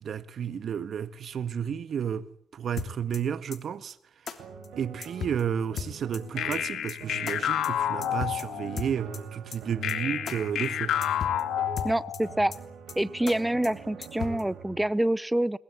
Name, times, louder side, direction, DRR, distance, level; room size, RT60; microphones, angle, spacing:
voice 1, 0.0-4.0 4.8-10.9, right 8 dB, 55° right, 1.6 m, -32 dB
sound 1, 2.8-3.2 3.5-3.6 3.9-4.0 4.3-4.4 4.6-4.7 5.0-5.4 5.8-6.2 6.5-6.6 6.9-7.0 7.3-7.4 7.6-7.7 8.0-8.4 8.8-9.2 9.5-9.6 9.9-10.0 10.3-10.4 10.6-10.7 11.0-11.4 11.8-12.2 12.5-12.6 12.9-13.0 13.3-13.4 13.6-13.7 14.0-14.4, left 7 dB, 55° left, 3.1 m, -36 dB
sound 2, 4.4-14.8, right 6 dB, 85° right, 5.2 m, -43 dB
sound 3, 6.4-8.9 9.8-12.3, left 10 dB, 75° left, 2.1 m, -30 dB
voice 2, 11.8-12.5 13.0-15.6, right 1 dB, 10° right, 0.9 m, -26 dB
22.0 x 20.5 x 8.3 m
cardioid pair, 90°, 0 cm